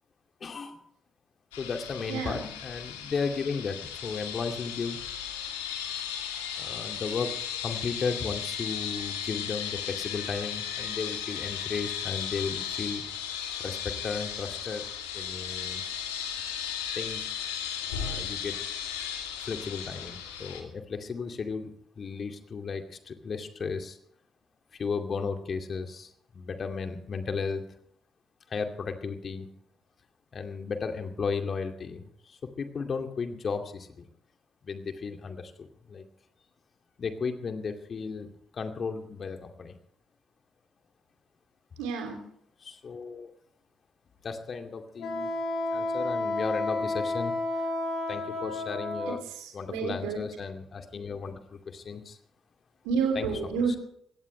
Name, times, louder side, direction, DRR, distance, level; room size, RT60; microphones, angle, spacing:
voice 1, 0.4-0.8 1.6-5.0 6.6-7.4 7.6-13.0 13.6-14.9 15.1-15.8 17.0-17.3 17.8-18.6 19.4-24.0 24.7-27.6 28.5-29.5 30.3-34.1 34.6-36.0 37.0-39.7 42.6-43.3 44.2-45.3 45.7-47.6 48.1-49.2 49.5-52.2 53.1-53.8, left 5 dB, 45° left, 5 dB, 2.4 m, -35 dB
sound 1, 1.5-20.6, left 8 dB, 80° left, 2.5 m, -36 dB
voice 2, 2.1-2.4 41.8-42.2 49.7-50.2 52.8-53.8, right 5 dB, 70° right, 3 dB, 3.2 m, -29 dB
Wind instrument woodwind instrument, 45.0-49.1, left 2 dB, 60° left, 5.3 m, -31 dB
22.0 x 17.5 x 3.3 m, 0.68 s
figure-of-eight pair, 45°, 0 cm